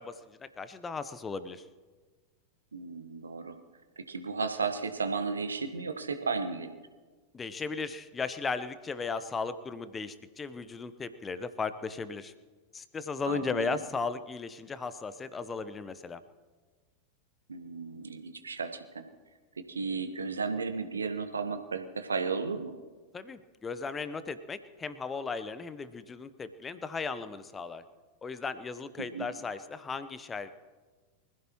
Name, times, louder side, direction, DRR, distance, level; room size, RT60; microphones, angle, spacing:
voice 1, 0.0-1.6 7.3-12.3 12.7-16.2 23.1-27.8 28.2-30.5, left 4 dB, 15° left, 13 dB, 1.0 m, -36 dB
voice 2, 2.7-3.6 4.0-6.7 13.3-13.8 17.5-19.1 19.7-22.7 29.0-29.3, right 4 dB, 75° right, 8 dB, 1.3 m, -34 dB
24.5 x 15.5 x 3.1 m, 1.4 s
figure-of-eight pair, 90°, 0 cm